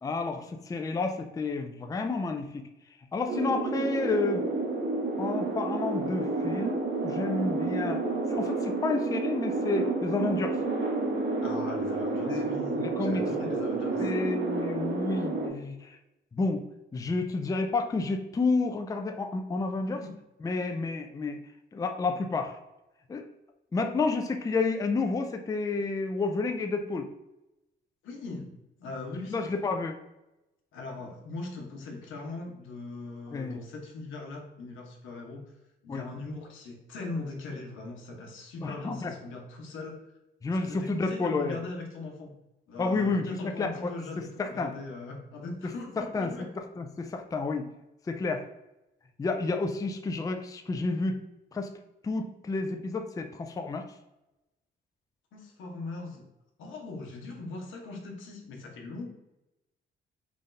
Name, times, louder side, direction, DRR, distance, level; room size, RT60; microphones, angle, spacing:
voice 1, 0.0-2.7 3.1-4.4 5.2-8.0 8.3-10.6 12.3-13.2 14.0-16.0 16.3-16.6 16.9-20.0 20.4-21.4 21.7-22.6 23.1-23.3 23.7-27.1 29.3-30.0 33.3-33.6 35.9-36.1 38.6-39.1 40.4-41.6 42.8-43.9 44.4-44.7 46.0-46.3 46.6-47.7 48.1-48.5 49.2-51.2 51.5-51.7 52.0-53.8, left 3 dB, 15° left, 5 dB, 0.4 m, -30 dB
sound 1, 3.3-15.5, right 3 dB, 70° right, 1.0 m, -30 dB
voice 2, 11.4-14.1 19.8-20.1 28.0-29.4 30.7-35.5 35.8-40.0 40.6-42.3 42.7-46.5 55.3-56.3 56.6-59.1, left 3 dB, 80° left, 1 dB, 0.9 m, -40 dB
3.4 x 2.6 x 3.8 m, 0.94 s
cardioid pair, 90°, 20 cm